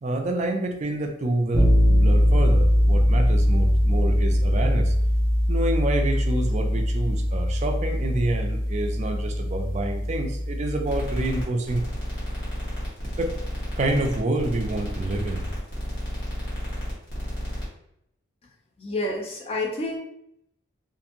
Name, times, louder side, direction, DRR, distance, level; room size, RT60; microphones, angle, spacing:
voice 1, 0.0-4.9 5.5-11.9 13.2-13.3 13.8-15.5, right 2 dB, 35° right, 3 dB, 0.3 m, -27 dB
sound 1, 1.5-11.4, equal, 10° right, 0.9 m, -21 dB
sound 2, 10.9-17.6, equal, 55° left, 1.2 m, -32 dB
voice 2, 18.8-20.0, left 2 dB, 30° left, 0 dB, 0.5 m, -29 dB
2.7 x 2.5 x 2.5 m, 0.76 s
head